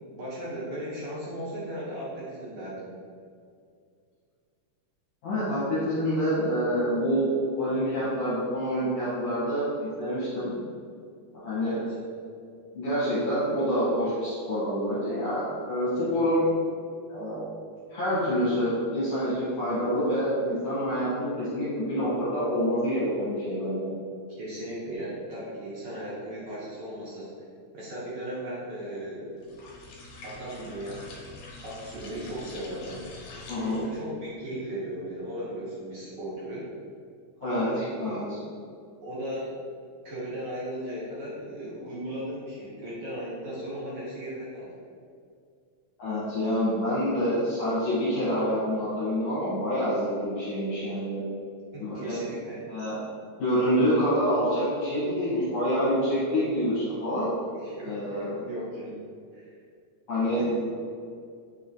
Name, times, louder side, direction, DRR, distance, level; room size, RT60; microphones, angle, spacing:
voice 1, 0.1-2.9 11.6-12.0 16.0-16.2 24.4-27.4 27.7-29.4 30.2-31.0 31.6-33.1 33.5-36.7 37.4-38.5 39.0-39.5 40.0-44.7 51.7-52.6 57.5-58.9 59.3-59.5 60.3-60.6, right 1 dB, 70° right, -7 dB, 1.4 m, -37 dB
voice 2, 5.2-10.6 11.3-11.8 12.7-16.4 17.1-17.5 17.9-23.9 33.5-33.8 37.4-37.7 38.0-38.4 46.0-51.2 51.8-52.2 52.7-53.0 53.4-57.3 57.8-58.3 60.1-60.4, equal, 65° left, -12 dB, 2.0 m, -27 dB
sound 1, 29.4-34.1, left 2 dB, 80° left, 2.0 m, -45 dB
4.7 x 3.0 x 2.6 m, 2.3 s
omnidirectional pair, 3.3 m